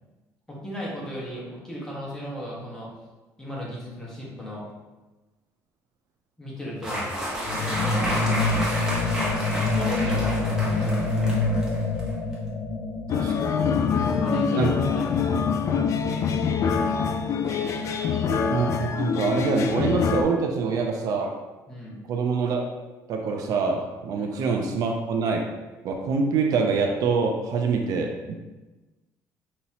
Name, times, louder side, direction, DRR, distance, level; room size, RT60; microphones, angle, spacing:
voice 1, 0.5-2.9 3.4-4.6 6.4-7.1 7.7-8.7 9.5-11.3 13.9-15.2 21.7-22.0 24.1-24.3, equal, 10° left, -5 dB, 1.3 m, -35 dB
sound 1, 6.8-12.3, equal, 10° right, 1.2 m, -31 dB
sound 2, 7.4-14.2, left 3 dB, 90° left, 0.7 m, -26 dB
sound 3, 13.1-20.2, left 6 dB, 50° left, 0.3 m, -25 dB
voice 2, 13.1-13.7 14.5-14.7 18.5-21.4 22.1-22.6 23.1-25.5 25.8-28.3, right 4 dB, 65° right, 3 dB, 0.5 m, -25 dB
5.4 x 2.9 x 2.8 m, 1.2 s
cardioid pair, 120°, 6 cm